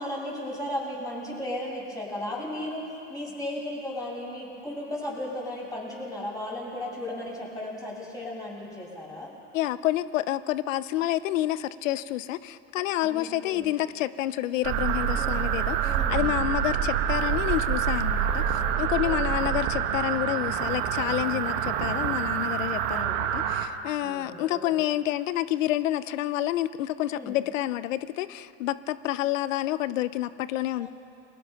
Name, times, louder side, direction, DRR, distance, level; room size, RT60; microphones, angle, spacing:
voice 1, 0.0-2.8 3.1-9.3 13.0-13.7 15.1-15.4 15.8-16.3 18.4-19.5 22.9-23.2 24.0-24.7 27.1-27.4 30.8-30.9, left 1 dB, 10° left, -4 dB, 7.6 m, -36 dB
voice 2, 9.5-30.9, left 14 dB, 85° left, 16 dB, 0.8 m, -29 dB
sound 1, 14.6-23.7, right 9 dB, 65° right, 2.0 m, -27 dB
30.0 x 22.0 x 5.8 m, 2.6 s
supercardioid pair, 120°, 37 cm